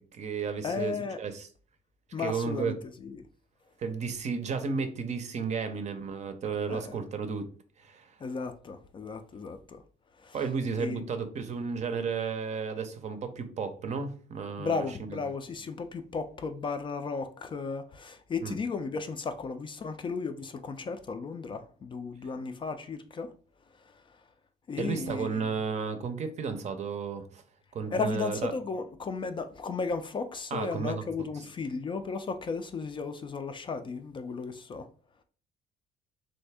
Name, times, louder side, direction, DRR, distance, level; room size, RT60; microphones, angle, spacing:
voice 1, 0.0-1.5 2.2-2.7 3.8-7.5 7.8-8.1 10.3-15.2 18.4-18.6 24.8-27.4 27.7-28.5 30.5-31.1, right 5 dB, 45° right, 0.6 m, -33 dB
voice 2, 0.6-1.2 2.1-3.3 6.7-7.0 8.2-9.8 10.2-10.4 10.8-11.1 14.6-23.3 23.7-24.2 24.7-25.6 27.9-34.9, left 4 dB, 30° left, 0.3 m, -35 dB
3.3 x 2.6 x 3.4 m
cardioid pair, 110°, 17 cm